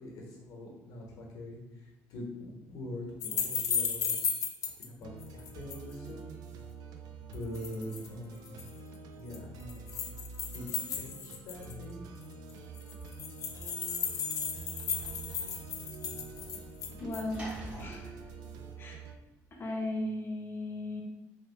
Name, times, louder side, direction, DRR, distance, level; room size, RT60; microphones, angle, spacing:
voice 1, 0.0-6.4 7.3-8.7 9.1-10.0 10.5-12.1, left 1 dB, 70° left, -1 dB, 1.0 m, -44 dB
sound 1, 3.2-4.9 5.2-5.9 7.3-8.1 8.5-8.7 9.3-11.8 12.2-12.3 12.5-12.6 12.8-17.4, left 7 dB, 55° left, 0.5 m, -34 dB
sound 2, 5.0-19.2, right 4 dB, 75° right, 0.3 m, -47 dB
Sliding door / Slam, 14.0-19.5, right 1 dB, 20° right, 0.9 m, -50 dB
voice 2, 17.0-17.5 17.8-18.2 18.8-19.0 19.6-21.0, left 1 dB, 35° left, 1 dB, 0.8 m, -36 dB
3.0 x 2.8 x 2.9 m, 0.94 s
cardioid pair, 100°, 7 cm